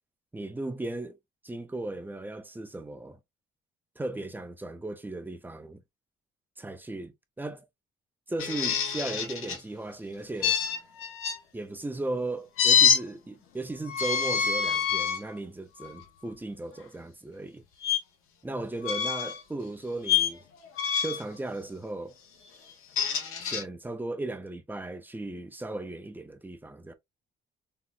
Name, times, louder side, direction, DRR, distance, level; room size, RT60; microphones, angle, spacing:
voice 1, 0.3-1.2 1.4-3.2 4.0-5.8 6.6-7.7 8.3-10.6 11.5-17.6 18.4-20.4 21.0-22.2 23.4-26.9, right 2 dB, 10° right, 0.4 m, -36 dB
sound 1, 8.4-9.6 10.4-11.4 12.6-13.0 13.8-15.2 15.8-16.0 17.8-18.0 18.8-19.4 20.0-20.3 20.8-21.3 22.7-23.6, left 7 dB, 85° left, 0.9 m, -26 dB
3.7 x 2.0 x 2.3 m
cardioid pair, 130°, 21 cm